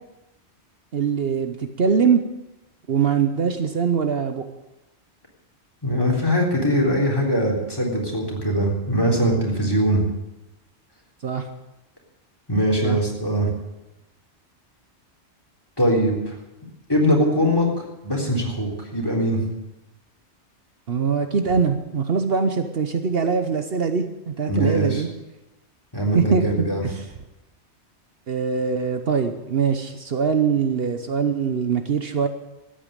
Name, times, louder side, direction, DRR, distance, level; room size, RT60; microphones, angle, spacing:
voice 1, 0.9-2.2 2.9-4.4 11.2-11.5 12.8-13.0 20.9-25.1 26.1-27.0 28.3-32.3, right 6 dB, 60° right, 8 dB, 1.1 m, -22 dB
voice 2, 5.8-10.0 12.5-13.5 15.8-16.4 16.9-17.7 18.0-19.4 24.5-25.0 25.9-26.9, equal, 20° left, 0 dB, 3.6 m, -21 dB
13.5 x 9.1 x 8.8 m, 0.94 s
omnidirectional pair, 1.2 m